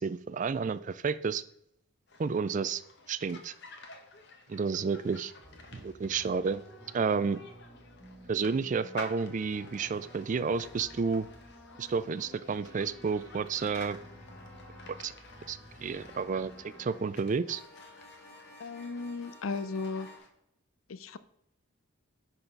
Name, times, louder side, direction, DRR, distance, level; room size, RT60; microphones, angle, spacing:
voice 1, 0.0-1.4 2.2-2.8 3.1-3.5 4.5-5.3 5.7-6.6 6.9-7.4 8.3-11.3 11.8-14.0 15.0-15.1 15.5-17.6, right 5 dB, 35° right, 0.3 m, -31 dB
sound 1, 2.1-20.3, left 3 dB, 55° left, 1.2 m, -52 dB
sound 2, 5.4-20.2, equal, 15° left, 1.8 m, -52 dB
voice 2, 18.6-20.1 20.9-21.2, left 4 dB, 75° left, 0.5 m, -36 dB
10.0 x 4.1 x 5.2 m
head